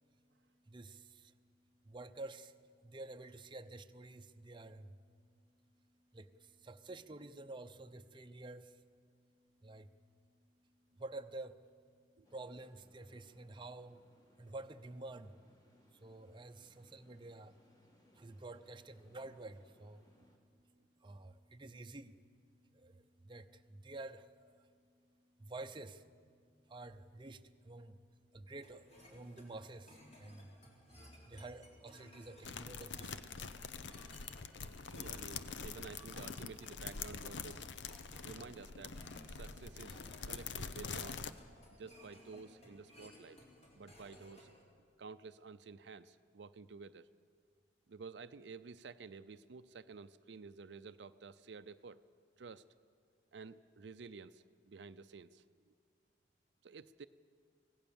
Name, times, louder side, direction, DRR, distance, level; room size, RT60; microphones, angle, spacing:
voice 1, 0.7-1.3 1.8-5.0 6.1-8.8 9.6-9.9 11.0-11.7 12.3-14.0 14.4-15.3 15.9-17.6 18.1-20.0 21.0-22.2 22.7-24.7 25.4-26.0 26.7-28.0 28.3-28.8 29.1-30.5 31.3-33.2, right 2 dB, 25° right, 7 dB, 0.7 m, -50 dB
sound 1, 12.2-20.4, equal, 20° left, 2.3 m, -70 dB
sound 2, 28.6-44.6, left 1 dB, 40° left, 4.0 m, -59 dB
sound 3, 32.4-41.3, left 5 dB, 80° left, 0.8 m, -45 dB
voice 2, 34.9-37.7 38.2-39.0 39.3-41.2 41.8-43.4 43.8-44.5 45.0-47.1 47.9-52.0 52.4-52.7 53.3-55.4 56.6-57.1, right 4 dB, 70° right, 11 dB, 0.5 m, -52 dB
25.0 x 17.5 x 7.1 m, 2.1 s
head